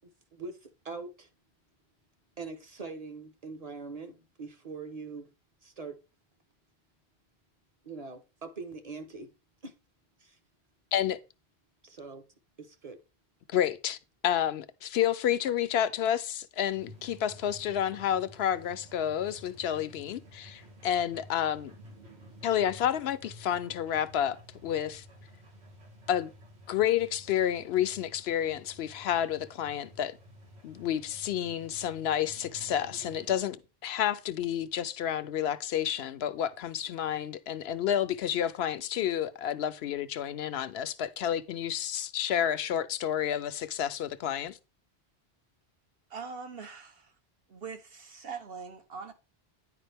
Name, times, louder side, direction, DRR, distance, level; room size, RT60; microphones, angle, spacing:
voice 1, 0.3-1.3 2.4-5.3 5.6-6.0 7.8-9.3 9.6-9.7 10.2-10.4 11.8-12.2 12.6-13.0, right 4 dB, 40° right, 1.0 m, -42 dB
voice 2, 13.5-14.0 14.2-21.7 22.4-24.4 24.6-25.0 26.1-26.3 26.7-30.2 30.6-33.6 33.8-44.6, left 10 dB, 80° left, 0.8 m, -30 dB
sound 1, 16.7-33.4, equal, 90° right, 1.8 m, -52 dB
voice 3, 46.1-47.1 47.5-49.1, right 5 dB, 65° right, 1.2 m, -42 dB
9.9 x 4.8 x 3.4 m
omnidirectional pair, 1.1 m